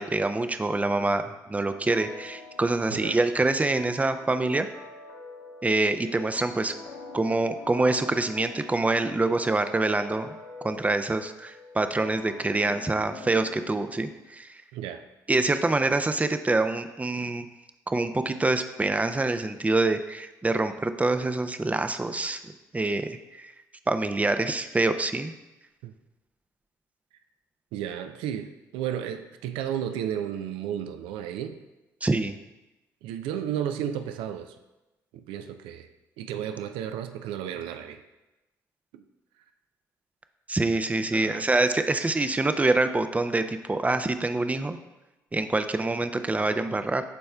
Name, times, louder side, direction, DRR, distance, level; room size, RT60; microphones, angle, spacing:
voice 1, 0.0-4.7 5.6-6.7 7.1-10.3 10.6-14.6 15.3-17.5 17.9-23.5 23.9-25.3 32.0-32.4 40.5-44.8 45.3-47.0, right 2 dB, 15° right, 9 dB, 0.5 m, -26 dB
sound 1, 1.9-14.3, left 3 dB, 75° left, 1.0 m, -45 dB
voice 2, 14.7-15.0 25.8-25.9 27.7-31.6 33.0-34.6 35.1-35.9 36.2-38.0 38.9-39.0 41.1-41.5, right 9 dB, 70° right, 9 dB, 0.5 m, -33 dB
12.0 x 4.2 x 2.3 m, 1.0 s
hypercardioid pair, 50°, 9 cm